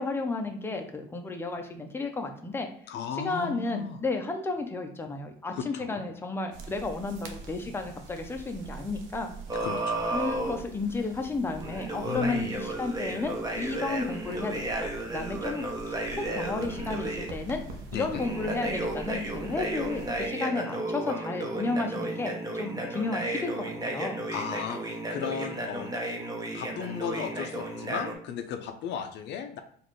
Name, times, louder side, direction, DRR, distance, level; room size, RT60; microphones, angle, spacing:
voice 1, 0.0-2.7 3.1-9.3 10.1-17.6 17.9-24.2, left 3 dB, 10° left, 4 dB, 0.6 m, -33 dB
voice 2, 2.9-4.0 5.5-6.1 9.5-10.1 12.0-12.5 17.9-18.2 24.3-25.9 26.5-29.6, left 7 dB, 60° left, 8 dB, 0.5 m, -35 dB
sound 1, 6.5-20.3, right 3 dB, 70° right, 0.7 m, -45 dB
sound 2, 9.5-10.6 11.6-17.3 18.1-28.1, right 1 dB, 20° right, 0.8 m, -33 dB
3.9 x 2.5 x 3.1 m, 0.65 s
supercardioid pair, 85°, 20 cm